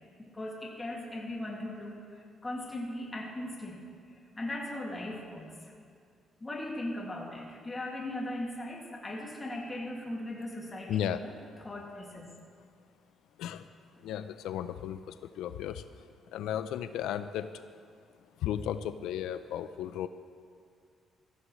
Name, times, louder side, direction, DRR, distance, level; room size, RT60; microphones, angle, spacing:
voice 1, 0.2-5.6 6.4-11.3 11.6-12.3, left 1 dB, 20° left, -2 dB, 2.1 m, -39 dB
voice 2, 10.9-11.2 13.4-13.7 14.0-15.8 16.3-17.6 18.4-20.1, left 10 dB, 90° left, 11 dB, 0.4 m, -34 dB
15.5 x 14.5 x 3.1 m, 2.2 s
cardioid pair, 90°, 0 cm